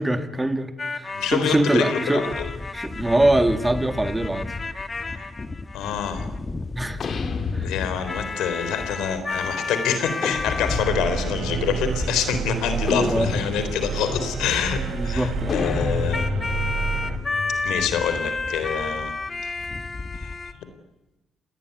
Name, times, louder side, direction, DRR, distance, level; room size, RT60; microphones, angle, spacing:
voice 1, 0.0-2.3 2.7-4.5 6.8-7.0 7.5-7.7 12.9-13.4 14.9-15.9, right 1 dB, 15° right, 8 dB, 2.4 m, -23 dB
sound 1, 0.8-20.5, left 3 dB, 30° left, 1.7 m, -32 dB
voice 2, 1.1-2.5 5.1-5.2 5.7-6.3 7.6-16.3 17.6-19.1 20.2-20.3, left 8 dB, 90° left, 10 dB, 3.8 m, -26 dB
sound 2, 7.0-8.3 10.2-11.3 12.9-13.9 15.5-18.2, left 5 dB, 50° left, 3.1 m, -30 dB
sound 3, 10.7-17.2, right 6 dB, 70° right, 3.1 m, -30 dB
28.0 x 19.5 x 9.6 m, 1.0 s
cardioid pair, 90°, 0 cm